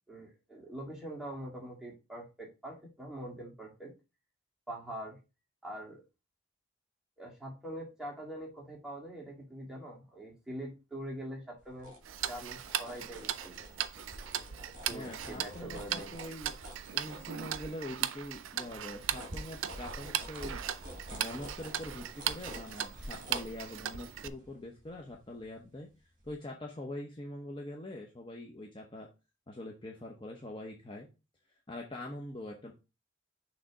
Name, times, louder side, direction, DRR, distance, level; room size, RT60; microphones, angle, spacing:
voice 1, 0.1-3.9 4.7-5.2 5.6-6.0 7.2-11.9 12.3-13.6 14.9-16.1, right 1 dB, 5° right, -3 dB, 1.9 m, -43 dB
sound 1, 11.6-17.9 18.3-25.8 26.2-26.3, equal, 40° right, 2.5 m, -48 dB
Tick-tock, 12.0-24.3, right 11 dB, 85° right, 0.4 m, -38 dB
voice 2, 14.9-16.5 16.9-20.6 21.1-25.9 26.2-29.1 29.5-31.1 31.7-32.7, left 1 dB, 25° left, 0 dB, 0.8 m, -43 dB
6.4 x 3.3 x 4.8 m, 0.28 s
head